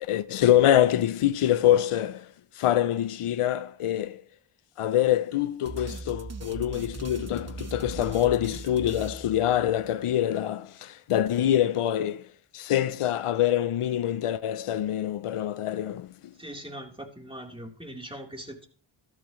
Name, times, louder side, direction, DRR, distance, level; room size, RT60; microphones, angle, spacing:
voice 1, 0.0-2.3 2.6-4.2 4.8-12.3 12.5-16.3, left 11 dB, 85° left, 0.7 m, -25 dB
sound 1, 5.7-9.9, right 3 dB, 30° right, 1.0 m, -39 dB
voice 2, 16.4-18.7, right 1 dB, 10° right, 3.7 m, -41 dB
14.0 x 13.0 x 3.2 m
cardioid pair, 55°, 50 cm